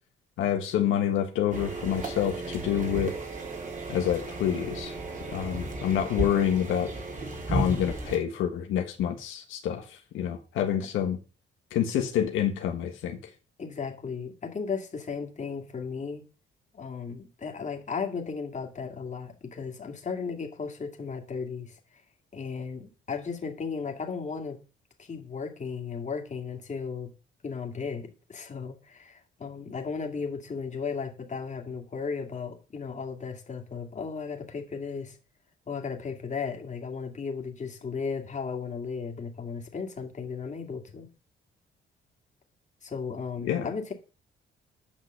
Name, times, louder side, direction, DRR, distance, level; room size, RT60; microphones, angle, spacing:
voice 1, 0.4-3.1 3.9-4.9 5.3-6.9 7.5-11.2 11.7-13.2 43.4-43.7, left 9 dB, 85° left, 1.5 m, -27 dB
sound 1, 1.5-8.2, right 2 dB, 40° right, 3.5 m, -34 dB
voice 2, 13.6-16.2 16.7-21.8 22.3-24.6 25.0-27.1 27.4-35.2 35.7-41.1 42.8-43.9, left 5 dB, 35° left, 2.5 m, -35 dB
8.6 x 5.8 x 6.6 m
cardioid pair, 90°, 20 cm